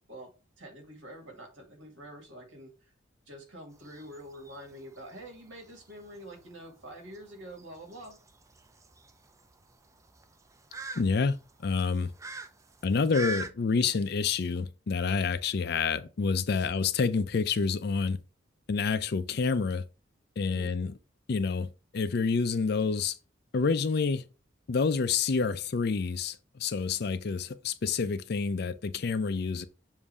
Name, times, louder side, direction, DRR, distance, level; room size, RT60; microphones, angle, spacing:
voice 1, 0.6-2.7 3.3-8.2 20.5-20.7, right 1 dB, 80° right, 2.2 m, -46 dB
sound 1, 3.7-13.5, right 4 dB, 15° right, 0.4 m, -44 dB
voice 2, 11.0-11.4 11.6-12.1 12.8-18.2 18.7-19.8 20.4-20.9 21.3-21.7 21.9-23.2 23.5-24.2 24.7-29.7, left 5 dB, 55° left, 0.5 m, -28 dB
7.3 x 2.7 x 4.8 m
head